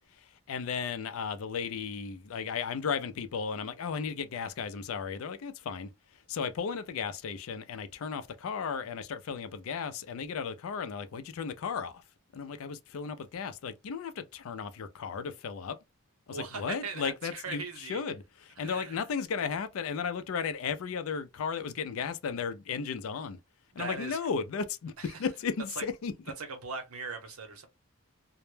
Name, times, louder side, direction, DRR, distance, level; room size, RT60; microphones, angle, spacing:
voice 1, 0.5-5.9 6.3-12.0 12.3-15.8 16.3-23.4 23.8-26.1, left 6 dB, 70° left, 0.4 m, -35 dB
voice 2, 16.3-18.0 18.6-19.1 23.8-24.2 25.0-25.2 25.8-25.9 26.4-27.7, right 4 dB, 90° right, 0.7 m, -39 dB
2.1 x 2.0 x 3.1 m
head